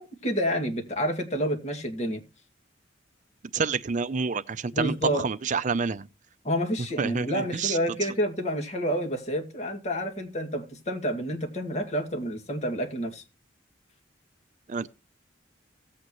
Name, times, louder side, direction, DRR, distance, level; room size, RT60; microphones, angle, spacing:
voice 1, 0.0-2.2 4.7-5.2 6.4-13.2, equal, 35° left, 2.2 m, -29 dB
voice 2, 3.5-6.1 7.0-7.8 14.7-14.9, right 5 dB, 40° right, 0.5 m, -28 dB
16.5 x 8.6 x 3.0 m
head